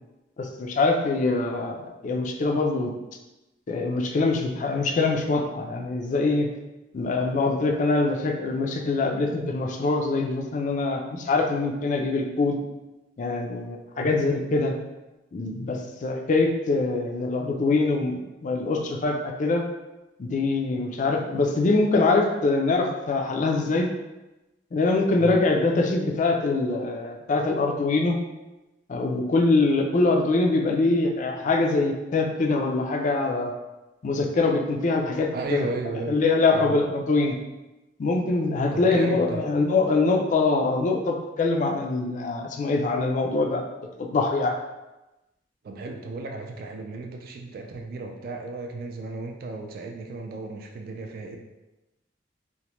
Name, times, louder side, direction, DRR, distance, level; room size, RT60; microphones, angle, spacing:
voice 1, 0.4-2.9 3.7-6.5 6.9-12.6 13.2-14.7 15.3-19.6 20.2-23.9 24.7-28.2 28.9-33.5 34.0-35.7 36.1-37.3 38.0-43.6 44.0-44.5, left 3 dB, 45° left, 3 dB, 0.3 m, -24 dB
voice 2, 35.3-36.2 36.5-36.8 38.7-39.4 45.6-51.4, right 3 dB, 55° right, 3 dB, 0.3 m, -34 dB
2.9 x 2.1 x 3.0 m, 1.0 s
head